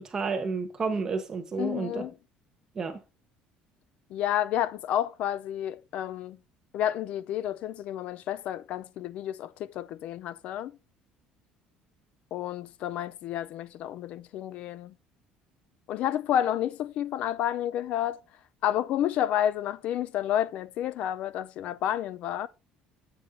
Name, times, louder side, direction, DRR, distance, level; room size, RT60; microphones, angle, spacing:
voice 1, 0.0-2.0 2.7-3.0, right 4 dB, 20° right, 1.3 m, -31 dB
voice 2, 1.6-2.1 4.1-6.4 6.7-10.7 12.3-14.9 15.9-18.2 18.6-22.5, left 11 dB, 50° left, 0.3 m, -30 dB
7.8 x 5.5 x 3.7 m
cardioid pair, 170°, 3 cm